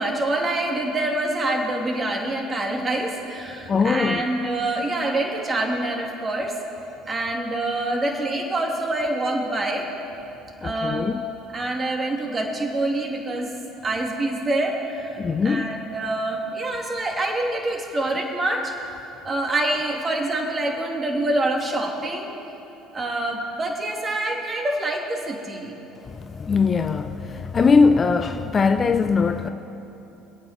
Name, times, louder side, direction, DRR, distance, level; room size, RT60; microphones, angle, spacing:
voice 1, 0.0-6.5 7.1-9.8 10.6-11.1 11.5-13.5 13.8-18.7 19.0-22.3 22.9-25.7, right 2 dB, 30° right, 2.8 m, -26 dB
voice 2, 3.7-4.2 10.6-11.2 15.2-15.7 26.1-29.5, left 5 dB, 35° left, 0.6 m, -21 dB
25.5 x 8.9 x 4.4 m
hypercardioid pair, 65°, 0 cm